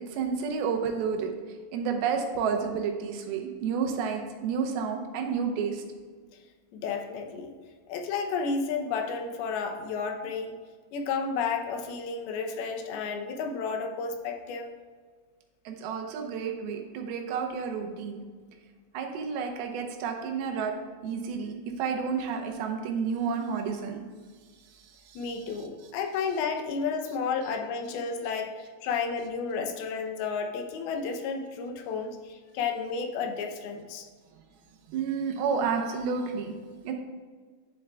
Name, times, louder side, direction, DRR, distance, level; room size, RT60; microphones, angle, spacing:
voice 1, 0.1-1.3 1.7-5.8 15.7-18.2 18.9-20.7 21.0-24.0 25.1-25.2 34.9-36.5 36.8-36.9, right 6 dB, 90° right, 3 dB, 2.7 m, -30 dB
voice 2, 6.7-7.5 7.9-10.6 10.9-14.7 25.2-34.1, left 5 dB, 90° left, 4 dB, 2.7 m, -32 dB
10.5 x 7.4 x 2.3 m, 1.5 s
omnidirectional pair, 4.3 m